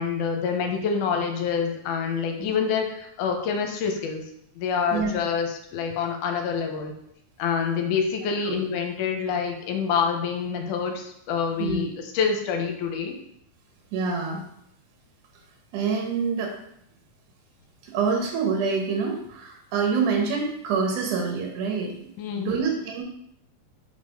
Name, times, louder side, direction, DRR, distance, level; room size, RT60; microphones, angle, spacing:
voice 1, 0.0-4.2 4.6-6.9 7.4-13.2 22.2-22.6, left 6 dB, 80° left, 4 dB, 2.2 m, -27 dB
voice 2, 13.9-14.4 15.7-16.5 17.8-21.9 22.4-23.0, right 5 dB, 75° right, 1 dB, 2.3 m, -26 dB
5.1 x 4.0 x 5.2 m, 0.74 s
omnidirectional pair, 3.7 m